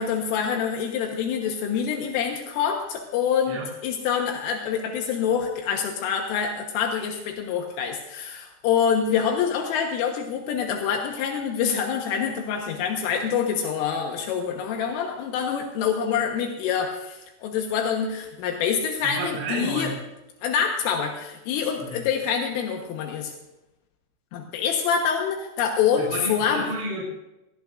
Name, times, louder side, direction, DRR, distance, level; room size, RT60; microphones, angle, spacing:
voice 1, 0.0-19.9 20.4-23.3 24.3-26.7, left 7 dB, 80° left, 2 dB, 3.8 m, -26 dB
voice 2, 19.0-20.0 21.8-22.0 26.0-27.1, right 1 dB, 60° right, -4 dB, 6.0 m, -31 dB
22.0 x 17.5 x 2.6 m, 0.94 s
omnidirectional pair, 5.8 m